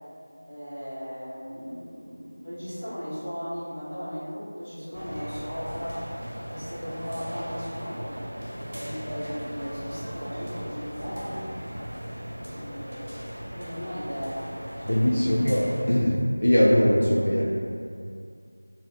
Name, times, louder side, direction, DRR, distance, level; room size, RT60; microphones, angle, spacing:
voice 1, 0.5-6.1 6.4-8.2 8.8-11.5 12.5-13.3 13.6-15.8, equal, 30° left, -15 dB, 1.3 m, -37 dB
sound 1, 4.9-15.8, equal, 50° right, 0.8 m, -37 dB
voice 2, 14.9-17.4, equal, 65° left, -6 dB, 0.4 m, -21 dB
2.6 x 2.3 x 3.2 m, 2.5 s
figure-of-eight pair, 175°, 0 cm